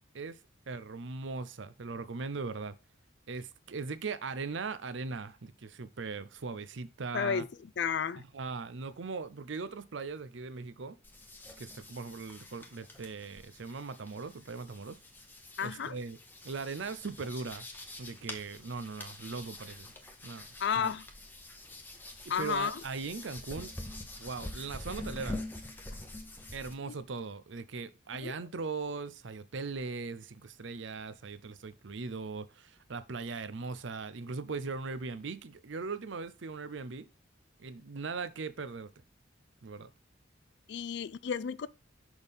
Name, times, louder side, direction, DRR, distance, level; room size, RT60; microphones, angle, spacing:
voice 1, 0.7-2.8 3.3-7.5 8.3-11.0 11.6-15.0 15.6-16.2 16.4-17.7 18.0-19.9 20.2-20.5 20.8-20.9 22.4-23.7 24.2-25.4 26.5-37.1 37.6-38.9 39.6-39.9, right 4 dB, 65° right, 0.6 m, -39 dB
voice 2, 7.1-8.2 15.6-16.0 20.6-21.0 22.3-22.8 26.8-26.9 28.1-28.4 40.7-41.7, left 7 dB, 55° left, 0.4 m, -32 dB
sound 1, 11.0-26.7, left 1 dB, 10° left, 0.9 m, -46 dB
6.3 x 5.4 x 3.5 m
head